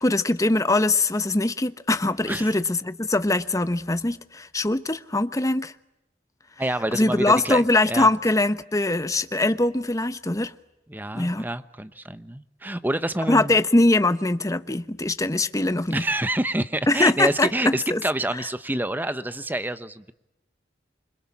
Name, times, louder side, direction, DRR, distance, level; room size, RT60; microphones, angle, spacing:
voice 1, 0.0-5.7 6.9-10.5 11.1-11.5 13.3-16.0 16.9-18.0, left 2 dB, 20° left, 1.0 m, -22 dB
voice 2, 2.3-2.6 6.6-7.6 7.9-8.1 10.9-13.5 15.9-20.1, right 1 dB, 10° right, 1.0 m, -27 dB
27.5 x 25.0 x 8.6 m
head